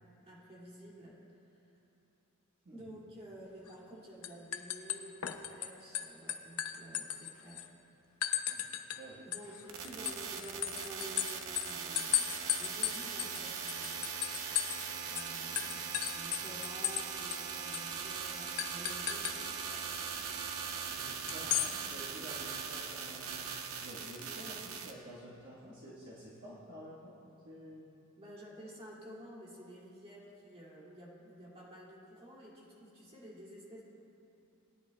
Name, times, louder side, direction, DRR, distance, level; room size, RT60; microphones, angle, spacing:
voice 1, 0.2-1.2 2.7-7.7 9.2-14.1 15.1-19.9 28.2-33.8, right 1 dB, 30° right, -6 dB, 2.3 m, -51 dB
sound 1, 3.7-3.9 4.2-5.7 5.9-7.7 8.2-9.0 9.3-14.9 15.2-15.3 15.6-17.0 17.3-17.4 17.7-17.9 18.6-19.4 21.3-21.7, left 12 dB, 85° left, 0.6 m, -35 dB
voice 2, 8.9-9.5 9.8-10.0 20.9-23.5 23.8-27.2 27.4-27.8, right 1 dB, 50° right, -8 dB, 1.4 m, -50 dB
sound 2, 9.7-24.9, right 6 dB, 75° right, 0.7 m, -40 dB
18.5 x 10.0 x 2.2 m, 2.8 s
head